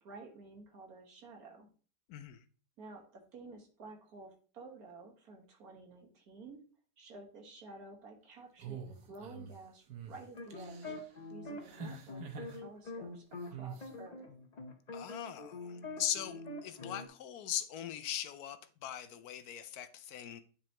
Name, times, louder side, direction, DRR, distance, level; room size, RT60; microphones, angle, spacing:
voice 1, 0.0-1.7 2.8-6.6 7.0-10.9 11.3-14.3, right 3 dB, 60° right, 1.9 m, -52 dB
voice 2, 2.1-2.4 14.9-20.4, left 10 dB, 70° left, 1.0 m, -40 dB
sound 1, 8.6-9.5 9.9-10.1 10.5-11.0 11.6-12.6 13.5-13.9, right 7 dB, 85° right, 1.5 m, -45 dB
sound 2, 10.2-13.5 13.8-17.1, left 2 dB, 35° left, 0.7 m, -45 dB
10.0 x 4.3 x 2.9 m
omnidirectional pair, 1.8 m